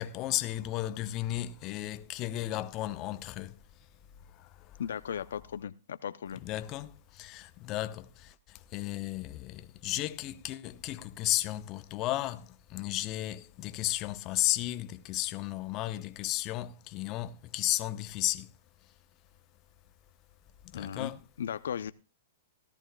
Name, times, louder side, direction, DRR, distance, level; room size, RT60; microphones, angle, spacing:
voice 1, 0.0-3.6 4.3-4.8 6.3-18.5 20.6-21.2, left 15 dB, 35° left, 0.7 m, -34 dB
voice 2, 4.8-6.4 20.7-21.1 21.4-21.9, left 8 dB, 80° left, 0.5 m, -36 dB
17.0 x 13.5 x 2.2 m
hypercardioid pair, 135°, 0 cm